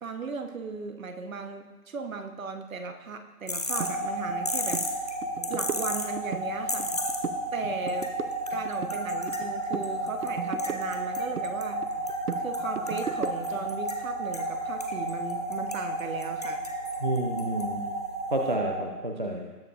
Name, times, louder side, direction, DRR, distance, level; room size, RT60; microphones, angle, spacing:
voice 1, 0.0-4.8 5.5-6.9 7.5-8.1 8.5-11.9 12.4-16.6, right 4 dB, 55° right, 6 dB, 1.1 m, -37 dB
sound 1, 3.5-18.5, left 1 dB, 25° left, 0.5 m, -39 dB
sound 2, 3.7-18.7, right 1 dB, 5° right, 1.0 m, -33 dB
sound 3, 3.8-3.9 4.3-4.4 4.7-4.9 5.2-6.5 6.8-7.4 7.7-9.5 9.7-11.5 11.8-13.7, right 7 dB, 75° right, 0.8 m, -36 dB
voice 2, 17.0-17.8 18.3-19.5, right 1 dB, 30° right, 2 dB, 0.5 m, -29 dB
19.0 x 7.3 x 2.5 m, 1.3 s
figure-of-eight pair, 155°, 47 cm